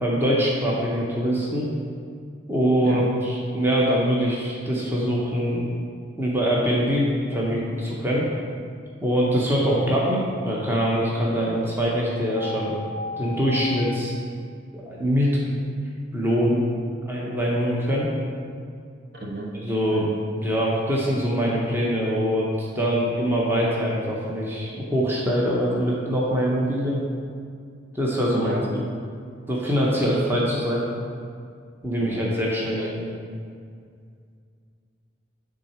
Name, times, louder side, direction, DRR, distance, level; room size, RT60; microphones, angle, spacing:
voice 1, 0.0-1.7 2.5-5.7 6.2-8.3 9.0-12.8 13.2-14.1 14.7-15.6 16.1-16.7 17.0-18.1 19.5-20.1 20.3-27.0 27.9-28.8 29.5-30.8 31.8-33.1, equal, 10° right, -5 dB, 0.8 m, -23 dB
sound 1, 12.4-14.0, left 3 dB, 40° left, 0.5 m, -34 dB
voice 2, 19.1-19.5 19.9-20.2 28.3-28.6 32.0-32.3 32.8-32.9, right 1 dB, 60° right, -4 dB, 1.3 m, -33 dB
9.7 x 3.7 x 4.4 m, 2.2 s
head